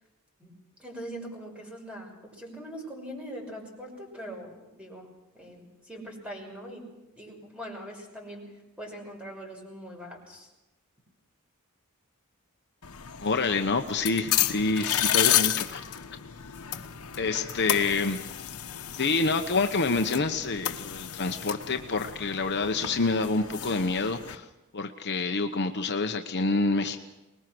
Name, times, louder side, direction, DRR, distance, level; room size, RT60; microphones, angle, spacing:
voice 1, 0.8-4.5 4.8-5.1 5.3-6.8 7.2-8.5 8.8-10.5, equal, 5° right, 0 dB, 6.2 m, -41 dB
sound 1, 12.8-24.4, left 11 dB, 80° left, 1.2 m, -31 dB
voice 2, 13.2-15.8 17.2-18.2 18.9-24.4 24.7-27.0, left 3 dB, 50° left, 5 dB, 1.0 m, -27 dB
23.5 x 20.5 x 6.2 m, 1.0 s
head